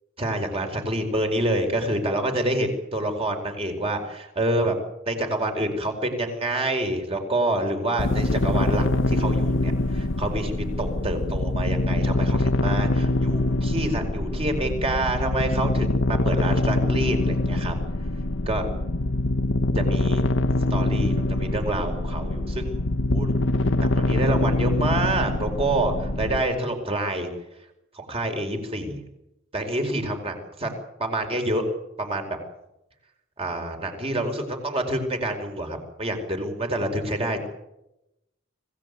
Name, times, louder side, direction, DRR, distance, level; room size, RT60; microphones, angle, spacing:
voice 1, 0.2-4.8 5.1-17.7 18.5-18.6 19.7-20.2 20.7-22.7 23.1-23.3 23.8-27.3 27.9-29.0 29.5-30.7 31.0-31.6 32.0-32.4 33.4-37.4, right 1 dB, 30° right, 5 dB, 4.8 m, -27 dB
sound 1, 8.0-26.4, left 2 dB, 85° left, 1.2 m, -24 dB
25.5 x 17.5 x 9.5 m, 0.91 s
head